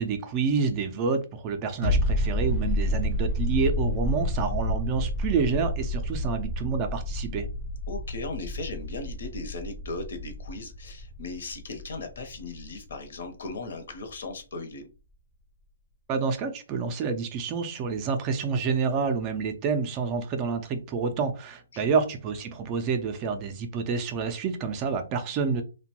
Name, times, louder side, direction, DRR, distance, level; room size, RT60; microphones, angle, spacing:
voice 1, 0.0-7.5 16.1-25.6, right 5 dB, 25° right, 0.4 m, -28 dB
sound 1, 1.8-13.2 13.4-13.5, left 1 dB, 25° left, 0.6 m, -29 dB
voice 2, 7.9-14.9 21.7-21.9, left 3 dB, 65° left, 0.8 m, -37 dB
2.8 x 2.2 x 2.9 m
hypercardioid pair, 160°, 0 cm